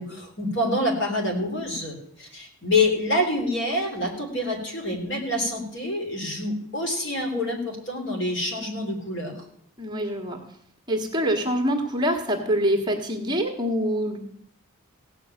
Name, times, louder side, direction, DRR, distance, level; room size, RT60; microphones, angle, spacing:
voice 1, 0.0-9.4, left 1 dB, 55° left, 1 dB, 3.4 m, -27 dB
voice 2, 9.8-10.4 10.9-14.2, equal, 20° right, 3 dB, 1.5 m, -25 dB
16.5 x 5.7 x 8.9 m, 0.68 s
head